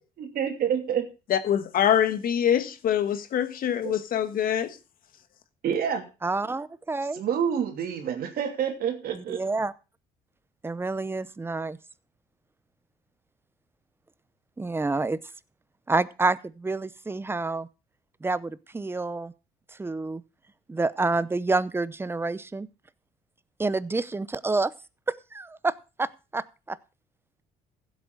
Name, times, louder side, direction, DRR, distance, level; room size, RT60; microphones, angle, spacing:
voice 1, 0.2-1.1 3.8-3.9 5.6-6.0 7.1-9.4, right 8 dB, 60° right, 2.9 m, -28 dB
voice 2, 1.3-4.8, left 9 dB, 60° left, 1.5 m, -24 dB
voice 3, 6.2-7.2 9.1-9.7 10.6-11.8 14.6-15.2 15.9-17.7 18.2-19.3 19.7-20.2 20.7-22.7 23.6-24.7 25.1-26.8, right 3 dB, 15° right, 0.7 m, -28 dB
15.5 x 8.3 x 3.9 m
cardioid pair, 110°, 17 cm